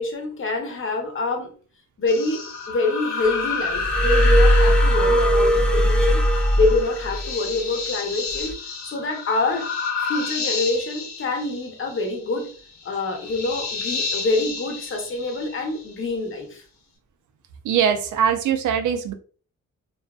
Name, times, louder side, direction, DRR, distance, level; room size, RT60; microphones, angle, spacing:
voice 1, 0.0-1.5 2.0-8.5 8.8-9.6 10.0-12.5 12.8-16.6, left 3 dB, 40° left, 0.8 m, -26 dB
sound 1, 2.1-15.9, left 4 dB, 60° left, 1.0 m, -30 dB
Glass, 3.7-7.3 8.3-8.5, equal, 5° left, 0.4 m, -18 dB
voice 2, 17.6-19.1, right 8 dB, 65° right, 0.5 m, -21 dB
2.5 x 2.3 x 2.3 m
cardioid pair, 90°, 32 cm